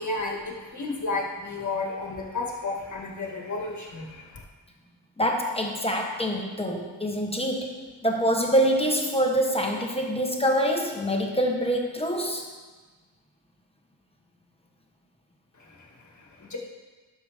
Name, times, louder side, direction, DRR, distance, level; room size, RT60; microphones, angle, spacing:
voice 1, 0.0-4.4 15.5-16.6, left 3 dB, 40° left, -1 dB, 1.8 m, -33 dB
voice 2, 5.2-7.7 8.0-12.4, equal, 15° left, 1 dB, 1.2 m, -25 dB
12.0 x 6.7 x 3.6 m, 1.3 s
wide cardioid pair, 105°, 46 cm